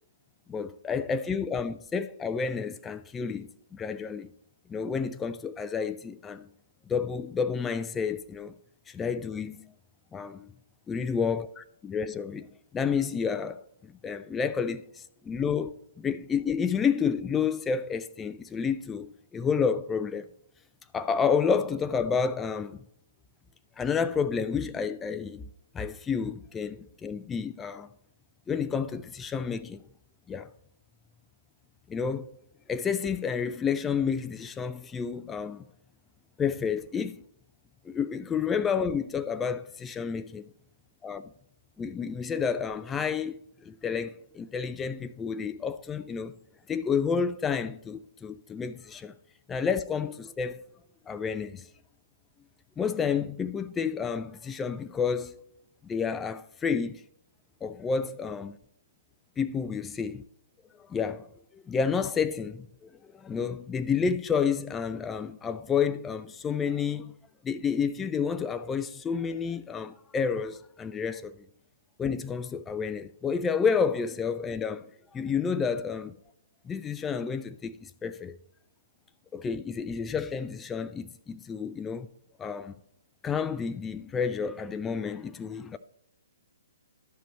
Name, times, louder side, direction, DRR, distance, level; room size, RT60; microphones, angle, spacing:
voice 1, 0.5-4.3 4.7-6.5 6.9-8.5 8.9-9.7 10.1-10.5 10.9-20.3 20.9-22.8 23.8-25.5 25.7-27.9 28.5-29.8 30.3-30.5 31.9-32.4 32.7-35.6 36.4-37.2 37.8-40.5 41.0-41.3 41.8-46.3 46.7-49.1 49.5-50.6 51.1-51.7 52.8-55.3 55.8-57.0 57.6-58.6 59.4-60.2 60.9-67.2 67.4-71.4 72.0-76.2 76.6-78.4 79.3-82.1 82.4-82.7 83.2-85.8, left 6 dB, 15° left, 0.3 m, -30 dB
12.0 x 5.1 x 4.1 m
figure-of-eight pair, 125°, 0 cm